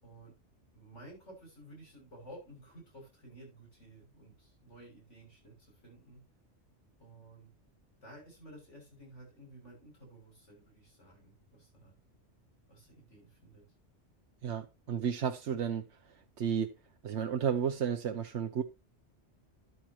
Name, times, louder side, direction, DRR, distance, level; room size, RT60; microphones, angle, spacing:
voice 1, 0.0-0.4 0.7-6.2 7.0-7.5 8.0-11.9 12.7-13.6, right 1 dB, 85° left, 7.3 m, -54 dB
voice 2, 14.4-15.9 16.4-16.7 17.0-18.6, right 8 dB, 75° right, 1.1 m, -32 dB
13.5 x 9.6 x 2.9 m
omnidirectional pair, 1.2 m